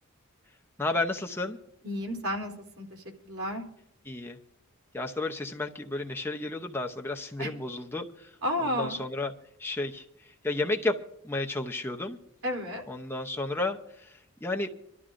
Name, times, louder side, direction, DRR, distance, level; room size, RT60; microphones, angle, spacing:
voice 1, 0.8-1.6 4.1-4.4 4.9-8.3 8.6-9.3 9.6-10.0 10.4-11.0 11.2-12.2 12.9-14.1 14.4-14.7, left 2 dB, 10° left, 3 dB, 0.7 m, -32 dB
voice 2, 1.8-3.6 7.4-7.5 8.4-9.0 12.4-12.8, left 1 dB, 85° right, 0 dB, 3.1 m, -32 dB
26.0 x 12.5 x 2.5 m, 0.78 s
head